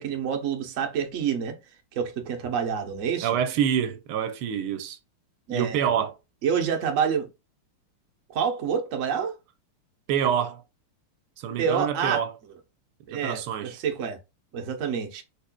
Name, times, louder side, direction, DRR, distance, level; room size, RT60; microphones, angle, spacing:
voice 1, 0.0-1.6 1.9-3.3 5.5-5.8 6.4-7.3 8.3-9.4 11.6-12.2 13.1-14.2 14.5-15.2, right 7 dB, 60° right, 0.8 m, -27 dB
voice 2, 3.2-5.0 5.5-6.2 10.1-10.6 11.4-12.3 13.1-13.8, right 9 dB, 80° right, 1.5 m, -26 dB
4.9 x 4.2 x 2.2 m
omnidirectional pair, 2.4 m